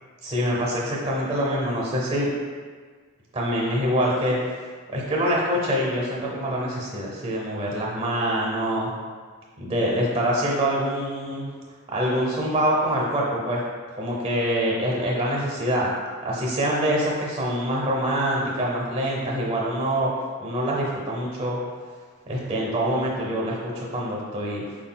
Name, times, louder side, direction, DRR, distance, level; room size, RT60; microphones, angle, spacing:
voice 1, 0.2-2.3 3.3-4.4 4.9-8.9 9.6-11.5 11.9-13.6 14.0-15.9 16.2-20.1 20.4-21.6 22.3-24.6, equal, 25° right, -3 dB, 0.7 m, -25 dB
4.5 x 3.9 x 2.2 m, 1.5 s
head